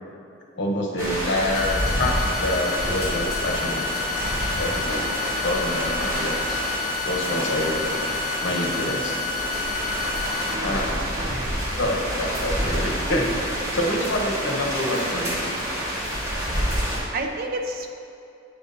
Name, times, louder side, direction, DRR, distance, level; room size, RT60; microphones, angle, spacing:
voice 1, 0.6-3.9 4.6-5.1 5.4-6.6 7.1-7.9 8.4-9.2 10.6-11.1 11.8-13.4 13.7-15.5, left 1 dB, 60° left, 0 dB, 1.2 m, -27 dB
sound 1, 1.0-17.0, equal, 15° right, 1.9 m, -28 dB
sound 2, 1.5-10.5, left 6 dB, 25° left, 0.4 m, -30 dB
voice 2, 10.5-11.6 17.1-18.0, right 2 dB, 50° right, 3 dB, 0.7 m, -32 dB
9.3 x 6.1 x 4.1 m, 2.7 s
head